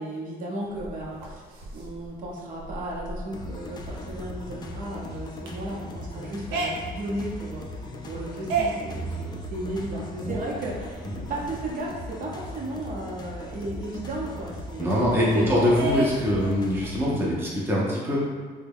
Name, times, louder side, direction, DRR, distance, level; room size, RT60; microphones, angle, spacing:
voice 1, 0.0-1.4 1.7-14.9 15.3-15.7, right 1 dB, 55° right, -4 dB, 0.9 m, -34 dB
sound 1, 0.6-12.1 12.5-12.6 12.8-15.3 15.7-17.2, right 3 dB, 90° right, 0.6 m, -35 dB
sound 2, 3.3-17.1, left 2 dB, 25° left, 0.4 m, -39 dB
voice 2, 14.8-18.2, equal, 15° right, -5 dB, 0.6 m, -23 dB
3.3 x 2.2 x 3.4 m, 1.5 s
cardioid pair, 110°, 17 cm